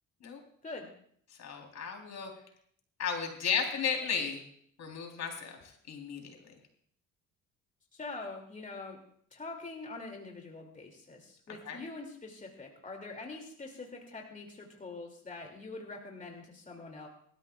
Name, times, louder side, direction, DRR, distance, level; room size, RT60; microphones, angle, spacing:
voice 1, 1.4-2.3 3.0-4.4 4.8-5.6 5.9-6.4 11.7-11.8, left 6 dB, 65° left, 2 dB, 3.6 m, -34 dB
voice 2, 7.9-9.0 9.3-17.1, left 3 dB, 25° left, 2 dB, 2.6 m, -44 dB
25.0 x 13.5 x 2.4 m, 0.64 s
cardioid pair, 90°, 30 cm